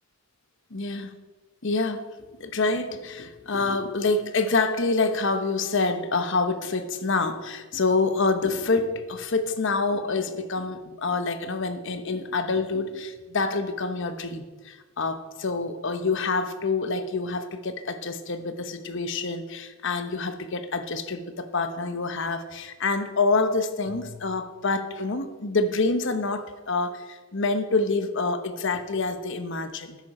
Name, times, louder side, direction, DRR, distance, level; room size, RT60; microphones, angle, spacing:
voice 1, 0.7-1.1 1.6-2.1 2.4-30.0, left 3 dB, 60° left, 9 dB, 1.0 m, -27 dB
13.0 x 10.5 x 4.3 m, 1.3 s
head